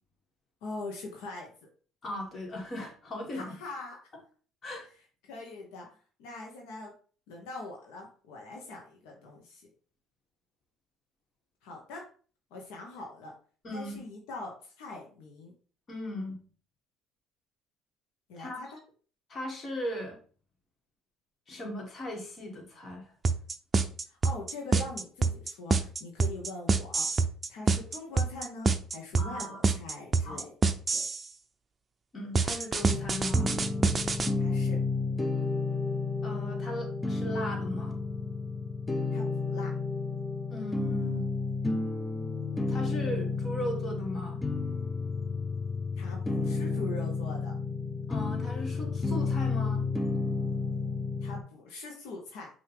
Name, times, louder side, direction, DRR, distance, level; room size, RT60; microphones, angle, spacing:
voice 1, 0.6-1.5 3.3-4.0 5.2-5.9 6.2-6.9 7.3-9.7 11.6-12.0 12.5-13.3 13.7-15.5 18.3-18.7 24.1-27.1 27.5-30.5 30.9-31.0 34.4-34.8 39.1-39.8 46.0-47.5 51.2-52.5, left 2 dB, 80° left, 0 dB, 1.0 m, -42 dB
voice 2, 2.0-3.6 4.6-4.9 13.6-14.0 15.9-16.4 18.4-18.6 19.3-20.2 21.5-23.1 29.2-29.8 30.2-30.5 32.1-33.6 36.2-38.0 40.5-41.2 42.7-44.4 48.1-49.8, left 1 dB, 40° left, 1 dB, 1.8 m, -37 dB
sound 1, 23.2-31.2 32.3-34.3, right 4 dB, 30° right, 0.5 m, -26 dB
sound 2, 32.8-51.4, left 3 dB, 15° left, 0.7 m, -31 dB
5.7 x 2.7 x 3.4 m, 0.41 s
supercardioid pair, 75°, 0 cm